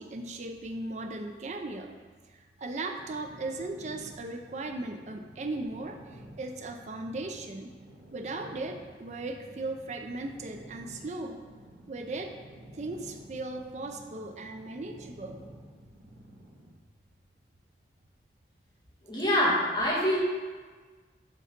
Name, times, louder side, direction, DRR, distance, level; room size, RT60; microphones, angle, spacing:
voice 1, 0.0-2.0 2.3-7.7 8.1-11.4 11.9-12.3 12.7-15.4, right 2 dB, 40° right, 4 dB, 0.4 m, -37 dB
sound 1, 2.9-16.8, right 1 dB, 90° right, 1.2 m, -51 dB
voice 2, 19.0-20.2, left 1 dB, 25° left, -8 dB, 1.6 m, -25 dB
5.1 x 3.9 x 5.9 m, 1.5 s
head